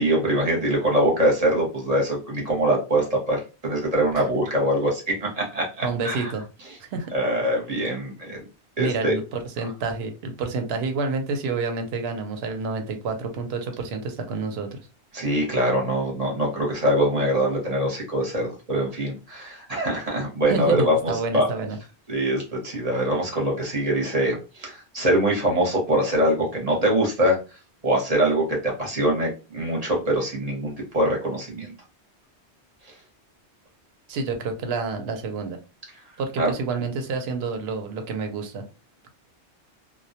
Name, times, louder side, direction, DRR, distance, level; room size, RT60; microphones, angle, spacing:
voice 1, 0.0-6.3 7.1-8.4 8.8-9.1 15.1-21.5 22.1-27.4 27.8-31.7 36.4-36.5, right 1 dB, 40° right, -1 dB, 0.8 m, -23 dB
voice 2, 5.8-6.4 6.8-7.1 8.8-14.8 20.5-21.8 34.1-35.6 36.2-38.6, right 4 dB, 70° right, 6 dB, 0.8 m, -29 dB
2.1 x 2.1 x 2.7 m, 0.31 s
omnidirectional pair, 1.1 m